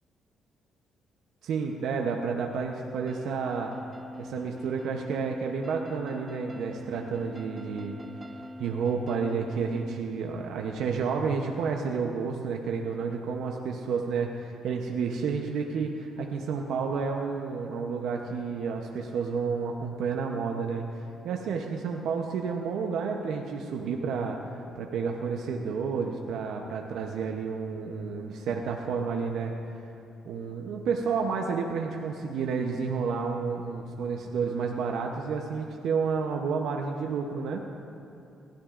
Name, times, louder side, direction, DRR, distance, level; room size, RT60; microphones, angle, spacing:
voice 1, 1.4-3.7 4.2-8.0 8.6-29.5 30.2-37.6, right 5 dB, 80° right, 2 dB, 0.8 m, -30 dB
sound 1, 3.1-9.9, left 1 dB, 20° right, 0.6 m, -43 dB
19.5 x 13.0 x 2.5 m, 2.8 s
cardioid pair, 90°, 0 cm